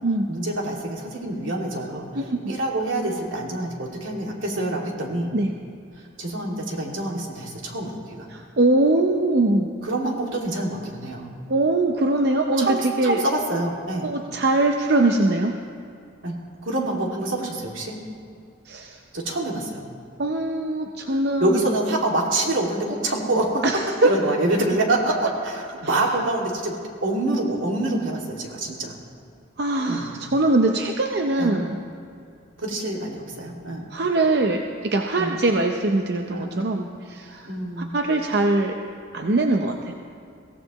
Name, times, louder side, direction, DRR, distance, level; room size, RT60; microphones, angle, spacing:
voice 1, 0.3-2.1 2.5-5.3 6.2-8.3 9.8-11.3 12.6-14.1 16.2-18.0 19.1-19.8 21.1-26.7 27.0-29.0 29.9-30.1 31.4-31.7 32.6-33.9 35.2-35.3 36.3-36.8 37.5-37.9, right 2 dB, 85° right, -1 dB, 2.3 m, -26 dB
voice 2, 2.1-2.5 5.3-5.5 8.3-9.7 11.5-13.2 14.0-15.5 18.7-19.0 20.2-21.6 23.6-24.1 29.6-31.8 33.9-37.5 37.8-38.7 39.1-39.9, right 2 dB, 55° right, 3 dB, 0.7 m, -22 dB
22.5 x 16.0 x 3.0 m, 2.3 s
head